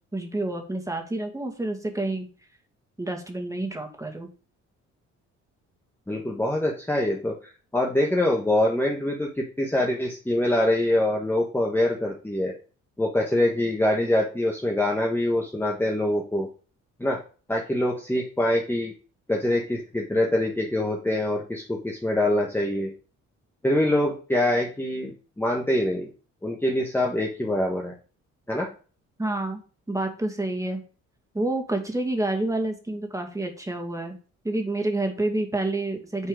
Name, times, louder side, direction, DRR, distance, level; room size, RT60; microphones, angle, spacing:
voice 1, 0.1-2.3 3.0-4.3 29.2-29.6 29.9-30.8 31.3-34.2 34.4-36.3, right 2 dB, 10° right, 3 dB, 2.4 m, -28 dB
voice 2, 6.1-12.5 13.0-16.5 17.0-17.2 17.5-18.9 19.3-22.9 23.6-26.1 26.4-27.9 28.5-28.7, left 1 dB, 5° left, -1 dB, 1.5 m, -24 dB
9.7 x 4.4 x 5.1 m, 0.37 s
cardioid pair, 90°, 30 cm